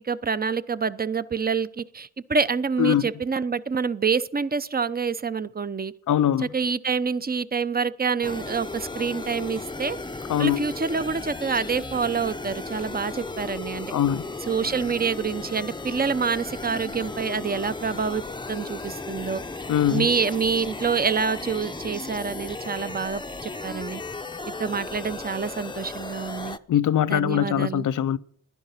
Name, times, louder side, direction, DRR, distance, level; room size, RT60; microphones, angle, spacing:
voice 1, 0.0-5.9 6.4-10.0 10.4-13.9 14.5-18.2 18.5-19.4 19.9-24.0 24.6-26.6 27.1-27.9, right 5 dB, 30° right, 0.7 m, -27 dB
voice 2, 6.1-6.5 10.3-10.6 13.9-14.2 19.7-20.1 26.7-28.2, left 10 dB, 85° left, 0.6 m, -22 dB
sound 1, 8.2-26.6, left 3 dB, 15° left, 0.6 m, -35 dB
15.5 x 11.0 x 5.7 m
wide cardioid pair, 100°, 30 cm